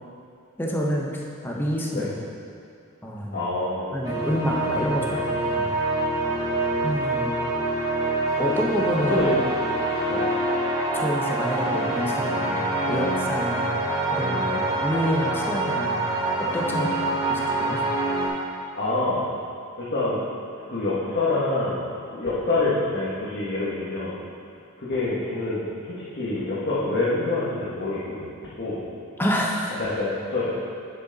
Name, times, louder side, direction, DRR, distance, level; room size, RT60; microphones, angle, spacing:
voice 1, 0.6-2.1 3.0-3.4 3.9-5.7 6.8-7.4 8.4-9.2 10.9-12.6 12.8-13.7 14.1-16.0 16.4-16.9 17.3-17.9 29.2-29.8, equal, 10° left, -2 dB, 1.0 m, -28 dB
voice 2, 3.3-3.9 6.3-6.8 9.1-9.3 10.1-10.2 14.5-14.6 16.8-16.9 18.8-19.3 19.8-20.2 20.7-21.8 22.1-24.1 24.8-28.3 28.6-28.8 29.8-30.5, left 2 dB, 50° left, -10 dB, 1.5 m, -26 dB
sound 1, 4.0-18.3, right 2 dB, 15° right, 1.6 m, -25 dB
9.3 x 7.0 x 4.1 m, 2.4 s
head